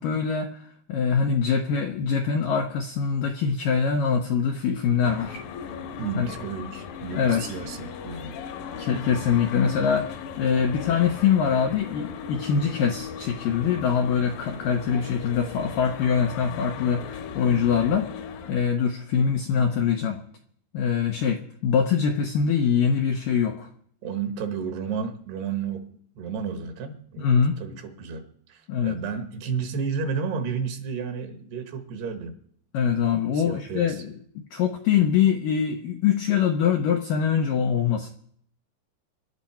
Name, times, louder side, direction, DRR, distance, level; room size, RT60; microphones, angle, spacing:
voice 1, 0.0-5.4 6.2-6.3 7.1-7.6 8.8-18.1 18.5-20.2 20.7-23.7 27.2-27.6 28.7-29.0 32.7-38.1, left 7 dB, 80° left, 3 dB, 2.0 m, -24 dB
sound 1, 5.0-18.7, left 6 dB, 65° left, 2.4 m, -37 dB
voice 2, 6.0-8.4 24.0-25.9 26.2-32.3 33.3-34.0, right 6 dB, 70° right, 6 dB, 3.3 m, -32 dB
25.0 x 11.5 x 4.4 m, 0.64 s
omnidirectional pair, 5.2 m